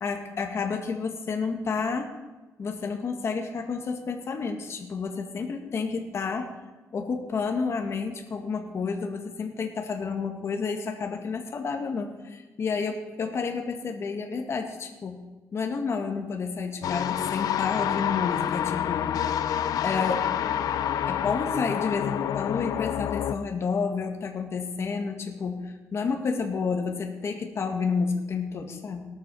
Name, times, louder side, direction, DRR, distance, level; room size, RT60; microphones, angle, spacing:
voice 1, 0.0-2.1 2.6-6.5 6.9-15.2 15.5-19.0 19.8-20.3 21.1-29.1, left 5 dB, 45° left, 3 dB, 2.0 m, -30 dB
sound 1, 16.8-23.4, left 10 dB, 80° left, 0.6 m, -28 dB
18.0 x 13.0 x 4.9 m, 1.2 s
cardioid pair, 135°, 6 cm